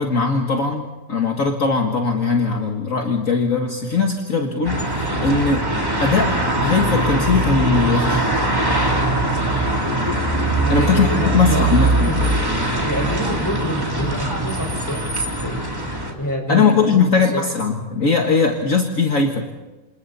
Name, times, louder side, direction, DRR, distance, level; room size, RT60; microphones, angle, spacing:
voice 1, 0.0-5.6 6.0-6.3 6.6-8.2 10.7-12.1 16.5-19.4, left 4 dB, 50° left, 3 dB, 2.0 m, -19 dB
sound 1, 4.6-16.1, right 1 dB, 15° right, 3.2 m, -21 dB
voice 2, 10.5-12.4 12.8-15.0 15.4-15.6 16.1-16.6 16.9-17.4, equal, 10° left, 3 dB, 5.0 m, -27 dB
29.0 x 27.0 x 4.2 m, 1.1 s
omnidirectional pair, 1.8 m